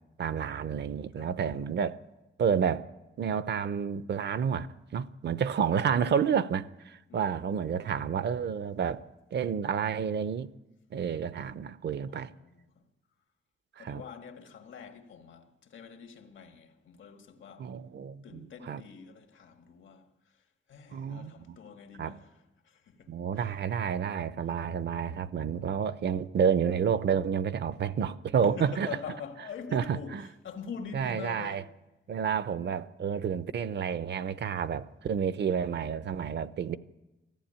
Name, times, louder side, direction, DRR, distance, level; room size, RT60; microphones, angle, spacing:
voice 1, 0.2-2.0 2.4-2.9 3.2-4.7 4.9-10.5 10.9-12.3 13.8-14.0 17.6-18.8 20.9-21.6 22.0-22.1 23.1-28.9 29.7-30.2 30.9-31.6 32.1-36.8, right 7 dB, 65° right, 0.7 m, -30 dB
voice 2, 1.2-1.7 7.1-7.6 12.1-12.8 13.8-17.8 18.2-23.5 28.4-31.8, left 6 dB, 80° left, 1.8 m, -45 dB
20.0 x 14.5 x 8.8 m
wide cardioid pair, 150°, 20 cm